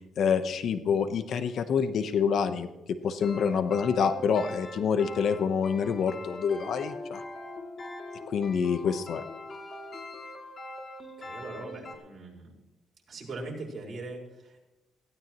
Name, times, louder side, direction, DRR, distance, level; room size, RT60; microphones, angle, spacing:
voice 1, 0.2-7.2 8.3-9.2, left 6 dB, 65° left, 11 dB, 1.0 m, -27 dB
sound 1, 3.2-11.9, left 1 dB, 40° left, 2.7 m, -42 dB
voice 2, 11.2-12.5 13.1-14.6, right 2 dB, 45° right, -2 dB, 5.1 m, -40 dB
18.0 x 16.5 x 3.1 m, 1.0 s
cardioid pair, 90°, 0 cm